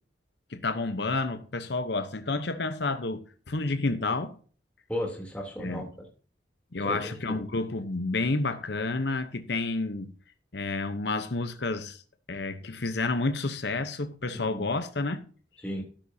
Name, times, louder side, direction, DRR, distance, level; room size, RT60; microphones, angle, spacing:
voice 1, 0.5-4.3 5.6-5.9 6.7-10.1 10.5-12.0 12.3-15.2, left 3 dB, 65° left, 0.9 m, -30 dB
voice 2, 4.9-6.1 6.8-7.4 14.3-14.7 15.6-15.8, left 1 dB, 5° left, 3.1 m, -35 dB
12.5 x 10.0 x 2.8 m
head